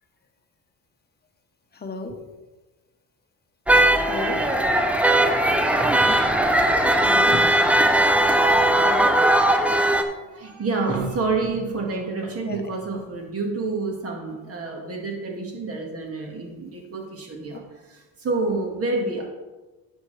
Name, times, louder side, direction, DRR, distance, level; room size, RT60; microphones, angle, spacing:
voice 1, 1.7-2.2 4.0-4.4 7.0-7.4 8.8-9.1 12.4-12.7, left 3 dB, 25° left, 4 dB, 1.1 m, -32 dB
sound 1, 3.7-10.0, right 1 dB, 5° right, 0.6 m, -19 dB
voice 2, 10.0-19.3, right 3 dB, 40° right, 1 dB, 2.0 m, -28 dB
10.5 x 7.3 x 3.4 m, 1.2 s
cardioid pair, 130°, 37 cm